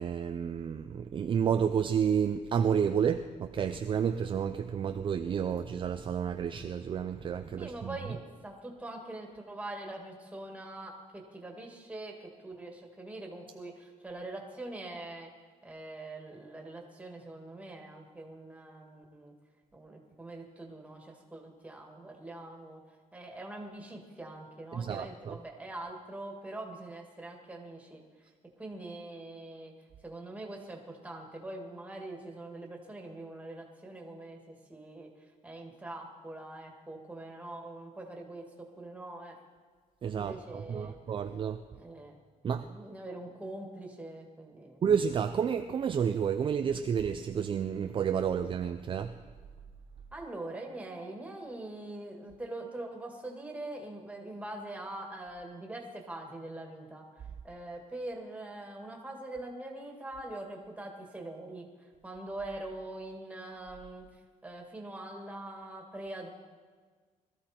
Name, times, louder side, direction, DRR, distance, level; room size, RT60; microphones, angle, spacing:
voice 1, 0.0-8.0 24.7-25.4 40.0-41.6 42.4-42.7 44.8-49.1, right 7 dB, 40° right, 7 dB, 0.5 m, -30 dB
voice 2, 7.6-15.3 15.6-19.3 19.7-22.8 23.1-28.0 28.6-29.7 30.0-39.4 40.1-41.0 41.8-42.1 42.5-44.8 50.1-64.1 64.4-66.3, right 2 dB, 10° right, 1 dB, 2.0 m, -43 dB
21.5 x 13.5 x 4.4 m, 1.5 s
cardioid pair, 145°, 14 cm